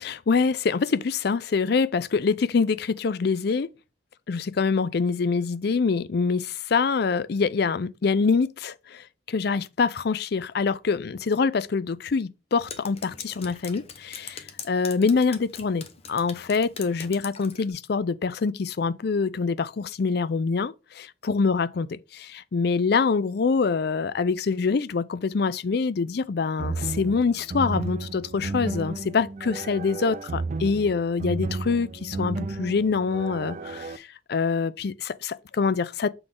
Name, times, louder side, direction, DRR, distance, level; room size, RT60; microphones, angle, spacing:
voice 1, 0.0-3.7 4.3-36.1, left 5 dB, 60° left, 0.4 m, -25 dB
Drip, 12.5-17.7, left 6 dB, 35° left, 0.8 m, -42 dB
sound 1, 26.6-34.0, right 3 dB, 40° right, 0.4 m, -33 dB
6.8 x 3.9 x 3.7 m
head